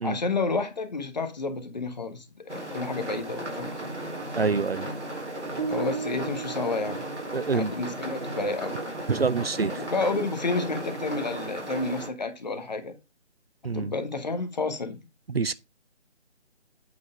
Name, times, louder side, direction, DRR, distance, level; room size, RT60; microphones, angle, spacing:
voice 1, 0.0-4.0 5.7-7.1 7.5-8.8 9.8-12.9 13.7-15.0, left 3 dB, 40° left, 1.4 m, -30 dB
sound 1, 2.5-12.1, right 1 dB, 75° right, 3.3 m, -35 dB
voice 2, 4.4-4.9 7.3-7.7 9.1-9.7 13.6-13.9 15.3-15.5, right 4 dB, 60° right, 0.6 m, -26 dB
sound 2, 5.6-7.8, right 5 dB, 40° right, 1.4 m, -35 dB
8.4 x 4.4 x 5.4 m
figure-of-eight pair, 150°, 35 cm